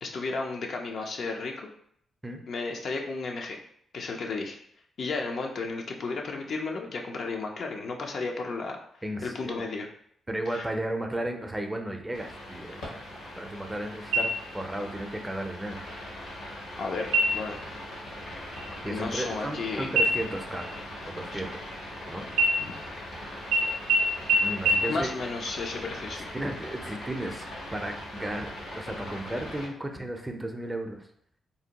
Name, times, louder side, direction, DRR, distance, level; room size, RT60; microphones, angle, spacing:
voice 1, 0.0-1.7 2.5-3.6 3.9-4.6 5.0-9.9 10.5-10.7 16.8-17.6 18.8-19.9 21.3-21.4 22.7-22.8 24.9-26.3, left 3 dB, 60° left, 2 dB, 0.4 m, -33 dB
voice 2, 9.0-9.6 10.3-15.8 18.8-20.7 21.1-21.5 22.1-22.2 24.4-25.1 26.3-27.5 27.7-31.1, right 1 dB, 20° right, 4 dB, 0.5 m, -34 dB
sound 1, 12.1-29.7, left 1 dB, 75° left, 0.8 m, -40 dB
sound 2, 14.1-14.8 15.2-15.3 15.8-16.4 17.0-17.6 18.0-18.2 18.5-19.6 20.0-22.0 22.3-23.1 23.5-23.6 23.9-24.0 24.3-24.4 24.7-24.8, right 2 dB, 85° right, 0.3 m, -26 dB
2.6 x 2.1 x 2.8 m, 0.68 s
hypercardioid pair, 40°, 0 cm